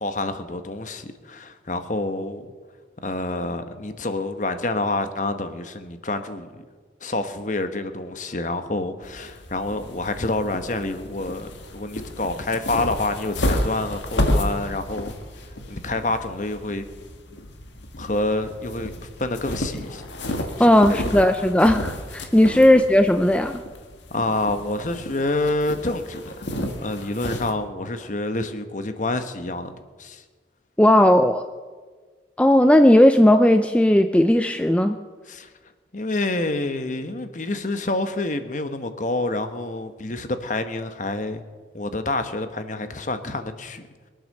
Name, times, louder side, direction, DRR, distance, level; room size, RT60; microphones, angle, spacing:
voice 1, 0.0-2.4 3.0-6.6 7.0-15.1 15.7-16.8 18.0-20.0 20.6-21.0 22.4-22.6 24.1-26.5 26.8-29.7 30.0-30.2 35.3-35.5 35.9-41.4 41.7-43.8, left 2 dB, 40° left, 9 dB, 1.1 m, -28 dB
sound 1, 9.0-27.5, left 1 dB, 75° left, 1.8 m, -31 dB
voice 2, 20.6-23.6 30.8-31.4 32.4-35.0, left 1 dB, 5° left, 8 dB, 0.4 m, -16 dB
22.5 x 8.9 x 6.6 m, 1.5 s
head